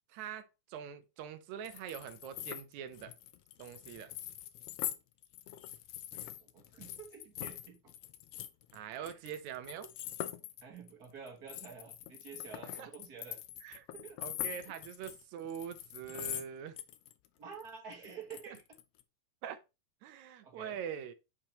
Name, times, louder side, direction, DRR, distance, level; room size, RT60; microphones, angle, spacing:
voice 1, 0.1-3.2 3.6-4.1 8.7-9.9 12.8-12.9 13.6-13.9 14.2-16.8 18.5-18.6 19.4-19.6 20.0-21.1, right 8 dB, 75° right, 2.0 m, -43 dB
sound 1, 1.6-5.0 5.2-16.5 16.8-17.3 17.5-19.0, left 13 dB, 80° left, 1.4 m, -43 dB
voice 2, 6.1-7.9 9.0-9.2 10.6-13.4 13.9-14.2 17.4-18.6 20.4-20.8, right 6 dB, 40° right, 1.5 m, -49 dB
8.7 x 4.7 x 2.9 m
omnidirectional pair, 3.5 m